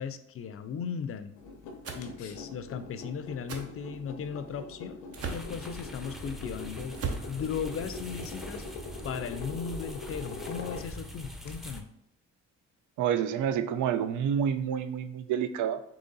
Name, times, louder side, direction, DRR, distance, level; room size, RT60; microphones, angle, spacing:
voice 1, 0.0-1.3 1.9-5.0 5.3-7.0 7.3-8.6 9.0-11.9, left 7 dB, 50° left, 11 dB, 0.5 m, -37 dB
sound 1, 1.4-11.7, left 3 dB, 85° left, 0.7 m, -43 dB
sound 2, 1.8-2.1 3.5-3.7 5.1-5.5 6.9-7.3, right 5 dB, 50° right, 0.7 m, -35 dB
sound 3, 5.2-11.8, equal, ahead, 0.5 m, -43 dB
voice 2, 13.0-15.8, right 8 dB, 85° right, 11 dB, 0.5 m, -28 dB
3.9 x 2.9 x 3.9 m, 0.77 s
cardioid pair, 90°, 30 cm